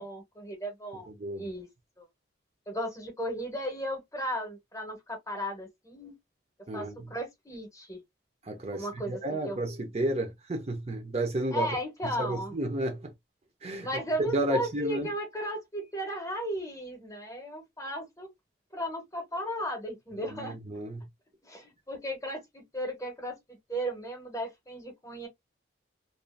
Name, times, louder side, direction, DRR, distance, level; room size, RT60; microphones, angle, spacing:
voice 1, 0.0-1.1 1.4-1.7 2.0-2.1 2.7-6.1 6.7-8.0 8.7-9.6 11.5-12.6 13.8-18.3 18.7-20.6 21.4-25.3, equal, 15° left, 0.8 m, -35 dB
voice 2, 1.1-1.5 6.7-7.1 8.4-11.7 12.0-13.1 13.6-13.9 14.2-15.1 20.2-21.1, right 1 dB, 35° right, 0.5 m, -32 dB
2.5 x 2.3 x 2.3 m
head